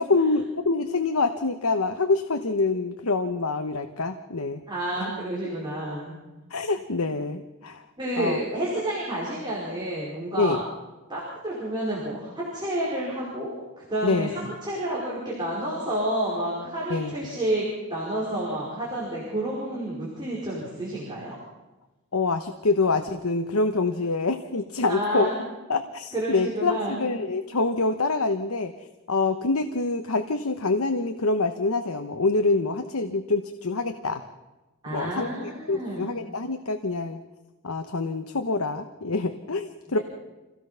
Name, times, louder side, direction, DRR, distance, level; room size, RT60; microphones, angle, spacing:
voice 1, 0.0-4.6 5.0-5.1 6.5-7.8 8.2-8.4 10.4-10.6 14.0-14.5 16.9-17.1 22.1-25.3 25.7-28.7 29.1-34.2 34.9-37.2 37.6-40.0, left 3 dB, 75° left, 7 dB, 1.1 m, -26 dB
voice 2, 4.7-6.2 8.0-10.6 11.1-17.7 17.9-21.4 24.9-25.4 26.1-27.0 34.8-36.1 40.0-40.1, right 1 dB, 20° right, -5 dB, 5.1 m, -30 dB
26.5 x 16.5 x 5.8 m, 1.1 s
head